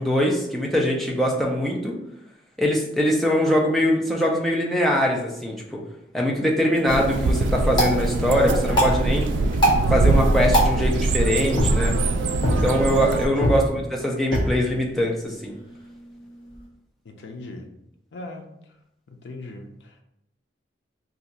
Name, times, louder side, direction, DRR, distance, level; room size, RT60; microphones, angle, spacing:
voice 1, 0.0-2.0 2.6-5.6 6.1-9.3 9.9-12.0 12.6-15.5, equal, ahead, -3 dB, 0.5 m, -22 dB
sound 1, 6.6-16.7, equal, 25° left, 0.8 m, -27 dB
sound 2, 6.9-13.3, right 2 dB, 90° right, 0.3 m, -22 dB
voice 2, 13.4-13.8 17.0-17.7 18.1-18.5 19.1-20.0, left 2 dB, 80° left, 4 dB, 0.5 m, -39 dB
2.7 x 2.4 x 4.0 m, 0.81 s
head